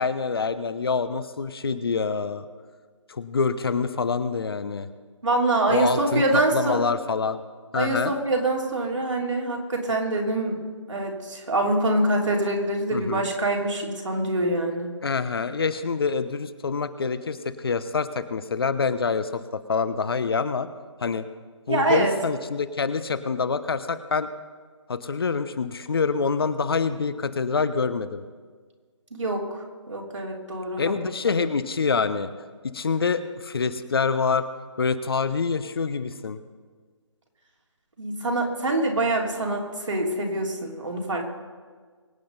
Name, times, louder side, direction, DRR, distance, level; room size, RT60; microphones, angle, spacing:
voice 1, 0.0-2.5 3.1-4.9 5.7-7.4 7.7-8.1 12.9-13.3 15.0-20.7 21.0-21.2 21.7-24.3 24.9-28.2 30.8-32.3 32.7-34.5 34.8-36.4, left 5 dB, 50° left, 12 dB, 0.9 m, -26 dB
voice 2, 5.2-6.8 7.7-10.6 10.9-14.9 21.7-22.1 29.1-30.9 38.0-41.3, right 2 dB, 75° right, -1 dB, 3.3 m, -25 dB
23.5 x 8.5 x 4.1 m, 1.5 s
figure-of-eight pair, 155°, 16 cm